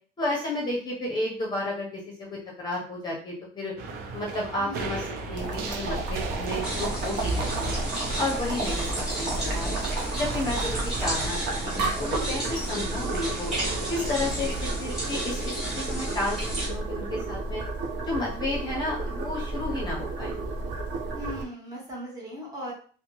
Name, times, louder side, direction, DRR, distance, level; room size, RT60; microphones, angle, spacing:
voice 1, 0.2-3.7 4.1-5.0 5.3-7.8 8.2-9.8 10.1-13.5 13.9-14.5 14.8-16.4 16.6-17.6 18.0-20.3, left 1 dB, 20° left, -3 dB, 0.7 m, -32 dB
sound 1, 3.8-15.2, right 3 dB, 50° right, 0.5 m, -37 dB
voice 2, 4.6-4.9 8.6-8.7 21.1-22.7, equal, 20° right, -4 dB, 0.9 m, -38 dB
Boiling, 5.4-21.4, right 2 dB, 65° right, 0.8 m, -32 dB
sound 2, 6.6-16.7, right 1 dB, 5° right, 1.1 m, -34 dB
2.8 x 2.1 x 2.9 m, 0.43 s
cardioid pair, 170°, 19 cm